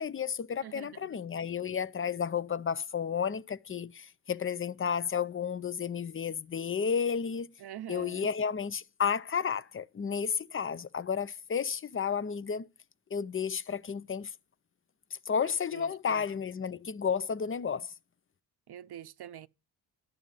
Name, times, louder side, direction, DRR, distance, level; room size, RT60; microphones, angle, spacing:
voice 1, 0.0-7.5 7.9-12.7 13.1-14.3 15.1-17.9, left 7 dB, 25° left, 0.6 m, -32 dB
voice 2, 0.6-1.2 7.6-8.3 15.7-16.2 18.7-19.5, right 11 dB, 55° right, 0.7 m, -45 dB
11.0 x 7.6 x 5.4 m
supercardioid pair, 55°, 46 cm